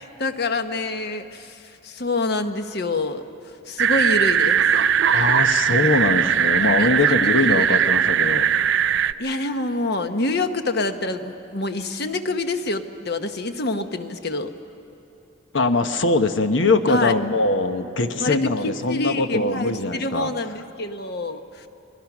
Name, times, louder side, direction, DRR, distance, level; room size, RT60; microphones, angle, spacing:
voice 1, 0.0-3.2 3.7-4.6 6.6-7.3 9.2-14.5 16.9-17.1 18.2-21.7, left 2 dB, 60° left, 8 dB, 1.1 m, -27 dB
sound 1, 3.8-9.1, right 8 dB, 70° right, 0.5 m, -19 dB
voice 2, 5.1-8.5 15.5-20.3, left 2 dB, 85° left, 8 dB, 1.1 m, -22 dB
30.0 x 21.5 x 6.1 m, 3.0 s
head